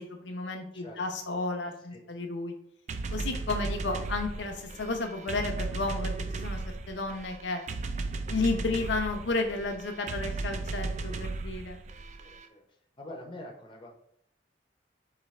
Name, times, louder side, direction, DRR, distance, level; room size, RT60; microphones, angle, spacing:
voice 1, 0.0-2.5 3.1-7.6 8.3-11.8, left 3 dB, 80° left, 5 dB, 0.7 m, -32 dB
sound 1, 2.9-12.5, right 3 dB, 40° right, 0.3 m, -36 dB
voice 2, 12.2-13.9, left 1 dB, 25° left, 0 dB, 0.7 m, -46 dB
4.9 x 3.2 x 3.2 m, 0.71 s
head